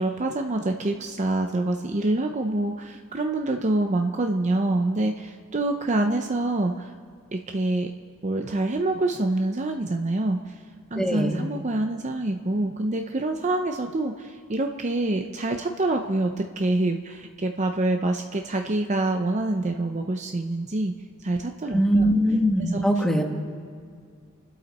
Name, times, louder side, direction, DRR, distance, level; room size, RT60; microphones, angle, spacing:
voice 1, 0.0-6.9 7.3-7.9 8.2-10.5 10.9-20.9 21.2-22.1 22.6-22.8, right 2 dB, 35° right, 4 dB, 0.6 m, -26 dB
voice 2, 10.9-11.4 21.7-23.2, equal, ahead, 2 dB, 1.4 m, -21 dB
28.5 x 12.0 x 4.2 m, 2.1 s
head